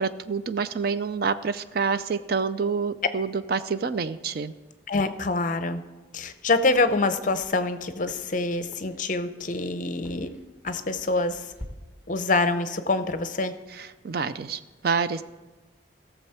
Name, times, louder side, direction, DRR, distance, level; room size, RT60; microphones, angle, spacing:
voice 1, 0.0-4.5 13.8-15.2, right 5 dB, 50° right, 13 dB, 0.4 m, -27 dB
voice 2, 4.9-5.8 6.1-10.3 10.6-11.5 12.1-13.5, left 3 dB, 40° left, 10 dB, 0.6 m, -25 dB
sound 1, 6.2-11.7, left 1 dB, 5° right, 1.5 m, -49 dB
16.5 x 7.0 x 4.4 m, 1.2 s
head